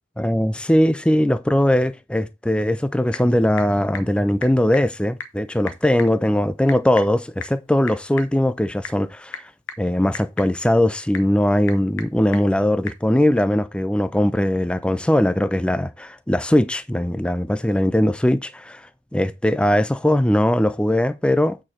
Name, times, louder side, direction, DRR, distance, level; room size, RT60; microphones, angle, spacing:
voice 1, 0.2-9.4 9.8-18.8 19.1-21.6, left 1 dB, 5° left, 0.3 m, -20 dB
Typing / Telephone, 2.6-13.1, left 5 dB, 75° left, 1.1 m, -39 dB
8.6 x 4.8 x 4.3 m
head